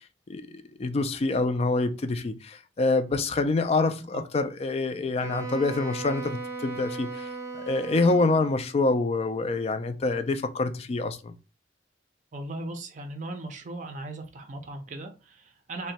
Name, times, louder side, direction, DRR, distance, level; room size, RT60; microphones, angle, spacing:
voice 1, 0.8-7.3 7.7-11.3, left 3 dB, 35° left, 0.3 m, -26 dB
Wind instrument woodwind instrument, 5.2-8.7, right 3 dB, 20° right, 0.8 m, -37 dB
voice 2, 12.3-15.9, right 2 dB, 40° right, 0.5 m, -38 dB
2.7 x 2.1 x 4.0 m
head